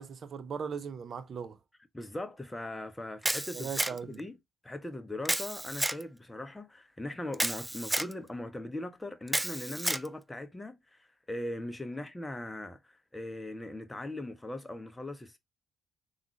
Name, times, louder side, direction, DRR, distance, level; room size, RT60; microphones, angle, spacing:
voice 1, 0.0-1.6 3.5-4.2, right 6 dB, 55° right, 0.6 m, -38 dB
voice 2, 1.9-3.7 4.0-4.4 4.6-15.4, left 1 dB, 15° left, 0.8 m, -40 dB
Camera, 3.2-4.2 5.2-6.0 7.3-8.1 9.3-10.1, right 1 dB, 10° right, 0.3 m, -31 dB
3.6 x 2.4 x 3.0 m
hypercardioid pair, 50°, 0 cm